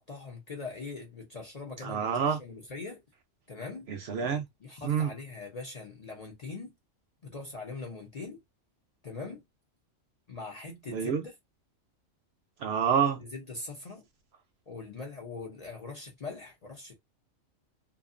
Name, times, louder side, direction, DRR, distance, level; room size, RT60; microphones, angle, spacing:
voice 1, 0.0-3.0 3.5-3.9 4.3-6.7 7.2-8.4 9.0-9.4 10.3-11.3 13.2-14.0 14.7-16.9, left 3 dB, 40° left, 0.6 m, -42 dB
voice 2, 1.8-2.4 3.9-4.4 4.8-5.1 10.9-11.2 12.6-13.2, right 7 dB, 65° right, 0.7 m, -28 dB
2.5 x 2.4 x 2.4 m
omnidirectional pair, 1.3 m